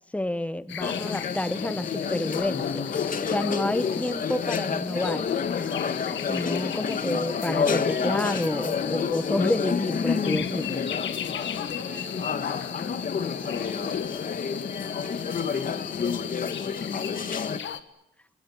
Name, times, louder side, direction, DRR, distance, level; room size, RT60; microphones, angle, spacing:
voice 1, 0.1-2.9 3.3-5.3 6.3-10.8, left 1 dB, 5° left, 13 dB, 1.3 m, -29 dB
sound 1, 0.7-17.8, left 9 dB, 70° left, 1.6 m, -36 dB
sound 2, 0.8-17.6, left 6 dB, 45° left, 1.7 m, -29 dB
voice 2, 11.8-14.4 14.9-17.1, right 6 dB, 85° right, 7 dB, 5.3 m, -50 dB
28.0 x 20.5 x 8.6 m, 0.83 s
cardioid pair, 90°, 20 cm